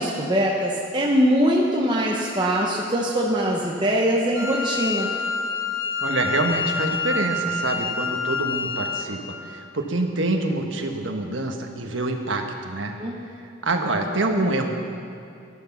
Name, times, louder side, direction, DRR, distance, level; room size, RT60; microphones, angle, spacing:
voice 1, 0.0-5.1 13.0-13.2, equal, 20° right, -2 dB, 0.9 m, -22 dB
Wind instrument woodwind instrument, 4.3-9.2, left 4 dB, 75° left, 1.5 m, -27 dB
voice 2, 6.0-9.2 9.4-13.0 13.6-14.7, right 2 dB, 70° right, 3 dB, 1.3 m, -26 dB
14.0 x 11.0 x 5.8 m, 2.6 s
head